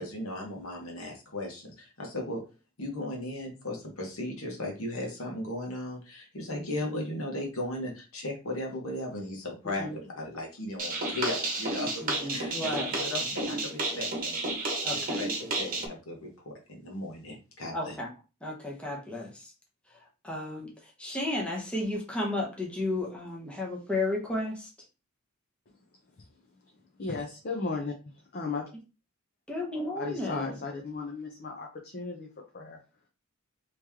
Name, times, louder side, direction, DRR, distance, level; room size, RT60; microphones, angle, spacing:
voice 1, 0.0-2.4 2.8-12.0 12.3-14.4 14.9-18.0, left 1 dB, 70° left, 0 dB, 1.3 m, -36 dB
sound 1, 10.8-15.9, right 2 dB, 40° right, 1.1 m, -31 dB
voice 2, 12.0-13.0 14.8-15.2 17.7-18.1 18.4-19.4 20.2-20.7 21.0-24.7 29.5-30.6, left 2 dB, 5° left, -2 dB, 0.9 m, -33 dB
voice 3, 27.0-27.9 28.3-28.7 30.0-32.3 32.5-32.8, left 4 dB, 45° left, 1 dB, 0.7 m, -35 dB
3.1 x 3.0 x 3.5 m, 0.31 s
head